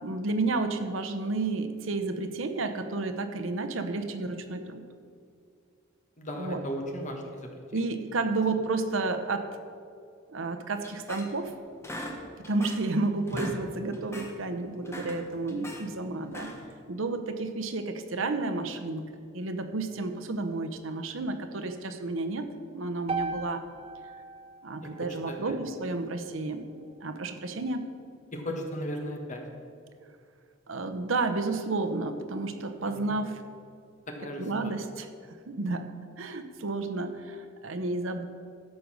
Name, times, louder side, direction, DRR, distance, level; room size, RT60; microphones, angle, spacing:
voice 1, 0.0-4.8 6.3-6.6 7.7-9.5 10.3-11.5 12.1-16.5 16.9-23.6 24.6-26.6 27.0-27.9 30.7-33.4 34.4-35.9 36.2-38.2, right 3 dB, 75° right, 8 dB, 0.8 m, -31 dB
voice 2, 6.2-7.8 24.8-24.9 25.3-25.5 28.3-29.4 32.9-33.2 34.2-34.7, equal, 35° left, 2 dB, 1.4 m, -36 dB
sound 1, 10.8-11.5 11.8-12.9 13.2-13.6 13.9-14.3 14.7-15.8 16.2-16.7, equal, 15° left, 1.1 m, -40 dB
sound 2, 23.1-27.3, right 3 dB, 30° right, 0.6 m, -39 dB
13.0 x 5.3 x 6.3 m, 2.4 s
head